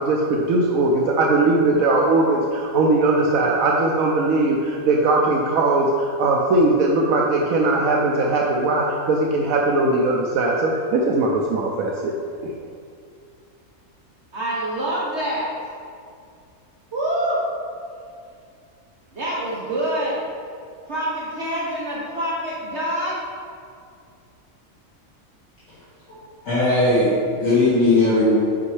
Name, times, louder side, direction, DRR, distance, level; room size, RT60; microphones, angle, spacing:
voice 1, 0.0-12.1, right 2 dB, 75° right, -1 dB, 1.0 m, -19 dB
voice 2, 14.3-15.5 16.9-17.4 19.1-20.2 20.9-23.2, right 1 dB, 55° right, -7 dB, 1.3 m, -26 dB
voice 3, 26.4-28.3, left 2 dB, 65° left, -13 dB, 2.3 m, -18 dB
8.4 x 5.3 x 3.2 m, 2.3 s
omnidirectional pair, 1.5 m